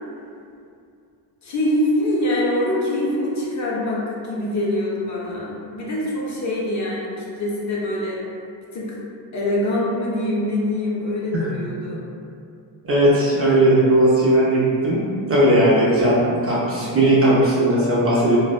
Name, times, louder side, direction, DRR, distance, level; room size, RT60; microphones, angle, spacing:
voice 1, 1.4-8.2 8.7-9.0 9.3-12.0 16.8-17.1, left 1 dB, 40° left, -5 dB, 0.5 m, -24 dB
voice 2, 12.8-15.0 15.3-18.4, right 1 dB, 30° right, -7 dB, 0.4 m, -17 dB
2.6 x 2.1 x 2.3 m, 2.4 s
cardioid pair, 105°, 48 cm